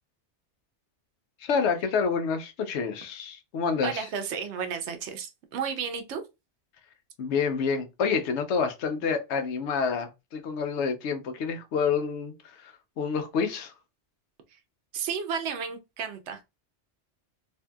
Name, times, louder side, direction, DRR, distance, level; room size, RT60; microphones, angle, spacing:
voice 1, 1.4-4.1 7.2-12.3 12.6-12.7 13.0-13.7, left 5 dB, 80° left, 0.9 m, -28 dB
voice 2, 3.8-6.2 14.9-16.4, right 6 dB, 75° right, 0.9 m, -32 dB
2.7 x 2.6 x 2.2 m
omnidirectional pair, 1.2 m